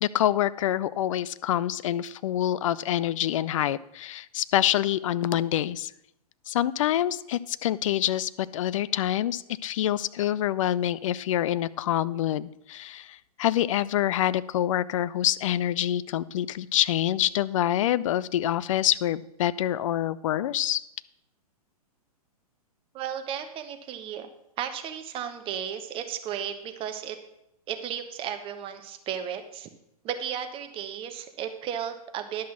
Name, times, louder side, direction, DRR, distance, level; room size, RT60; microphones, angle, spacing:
voice 1, 0.0-5.9 6.5-20.8, left 12 dB, 55° left, 18 dB, 0.5 m, -26 dB
voice 2, 22.9-24.3 24.6-27.2 27.7-29.7 30.0-32.5, right 9 dB, 25° right, 7 dB, 1.1 m, -34 dB
11.0 x 6.0 x 6.0 m, 0.79 s
hypercardioid pair, 115°, 20 cm